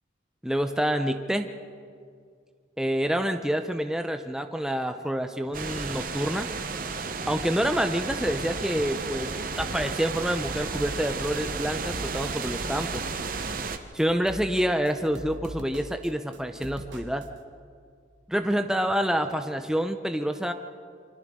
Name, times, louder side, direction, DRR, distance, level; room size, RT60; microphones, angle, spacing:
voice 1, 0.4-1.5 2.8-6.5 7.3-9.3 9.6-13.0 13.9-17.3 18.3-20.5, equal, 5° right, 6 dB, 0.6 m, -27 dB
sound 1, 5.5-13.8, right 4 dB, 45° right, 0.9 m, -33 dB
sound 2, 8.1-17.3, right 1 dB, 75° right, 1.6 m, -43 dB
28.0 x 25.0 x 3.7 m, 2.2 s
head